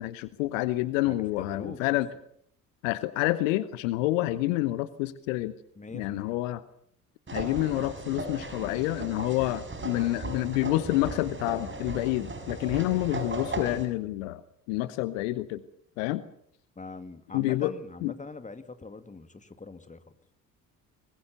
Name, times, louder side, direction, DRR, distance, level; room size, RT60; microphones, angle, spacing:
voice 1, 0.0-2.1 2.8-5.5 5.9-6.6 7.3-14.4 14.7-15.6 16.0-16.2 17.3-17.7 18.0-18.1, left 17 dB, 65° left, 16 dB, 1.0 m, -28 dB
voice 2, 1.1-2.0 5.8-6.4 16.8-20.0, left 3 dB, 15° left, 10 dB, 2.2 m, -42 dB
sound 1, 7.3-13.9, right 2 dB, 30° right, 5.9 m, -37 dB
25.0 x 21.0 x 6.9 m, 0.69 s
figure-of-eight pair, 50°, 42 cm